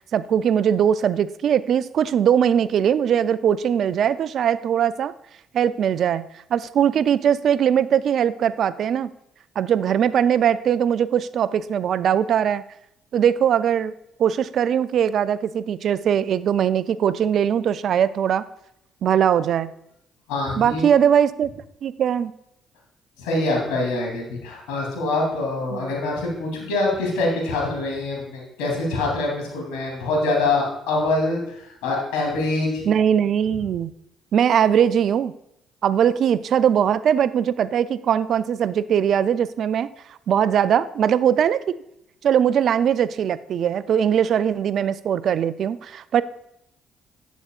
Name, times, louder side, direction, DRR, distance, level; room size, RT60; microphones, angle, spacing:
voice 1, 0.0-5.1 5.5-6.3 6.5-9.1 9.6-12.6 13.1-13.9 14.2-18.4 19.0-19.7 20.6-21.5 21.8-22.3 25.7-25.8 32.9-33.9 34.3-35.3 35.8-39.9 40.3-41.8 42.2-46.2, right 9 dB, 60° right, 16 dB, 0.4 m, -20 dB
voice 2, 20.3-20.9 23.2-32.8, left 2 dB, 80° left, -1 dB, 3.0 m, -24 dB
11.5 x 8.2 x 2.4 m, 0.79 s
hypercardioid pair, 55°, 0 cm